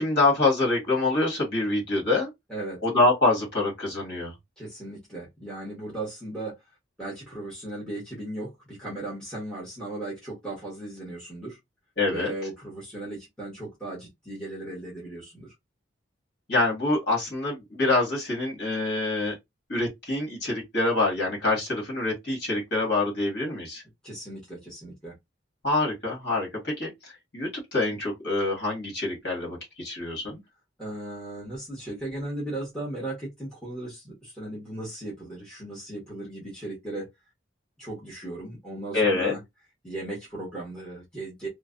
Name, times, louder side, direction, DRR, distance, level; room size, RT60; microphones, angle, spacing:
voice 1, 0.0-2.3 2.8-4.3 12.0-12.3 16.5-19.3 19.7-23.8 25.6-30.4 38.9-39.3, left 2 dB, 55° left, 1.5 m, -25 dB
voice 2, 2.5-2.8 4.6-6.6 7.0-11.6 12.1-15.5 24.0-25.1 30.8-37.1 37.8-39.4 39.8-41.5, right 2 dB, 5° left, 1.2 m, -37 dB
3.2 x 2.2 x 2.5 m
head